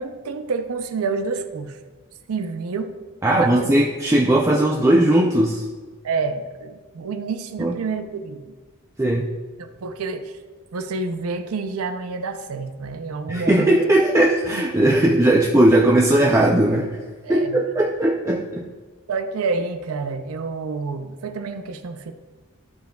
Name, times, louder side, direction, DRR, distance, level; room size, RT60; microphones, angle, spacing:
voice 1, 0.0-1.8 2.3-2.9 3.3-3.7 6.0-8.6 9.6-10.4 10.7-13.8 14.5-15.1 17.2-17.6 19.1-22.1, right 4 dB, 90° right, 7 dB, 0.5 m, -28 dB
voice 2, 3.2-5.7 7.6-7.7 9.0-9.3 13.3-17.0 17.3-18.7, right 1 dB, 15° right, -2 dB, 0.4 m, -18 dB
12.0 x 4.6 x 2.3 m, 1.4 s
head